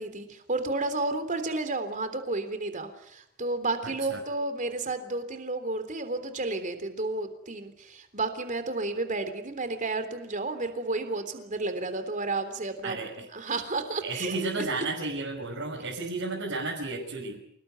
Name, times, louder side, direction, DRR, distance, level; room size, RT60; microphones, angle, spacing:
voice 1, 0.0-13.0 13.3-14.4, right 2 dB, 35° right, 9 dB, 3.4 m, -32 dB
voice 2, 3.8-4.2 12.8-13.6 14.0-17.4, right 3 dB, 60° right, -2 dB, 6.1 m, -33 dB
28.5 x 19.5 x 9.4 m, 0.75 s
head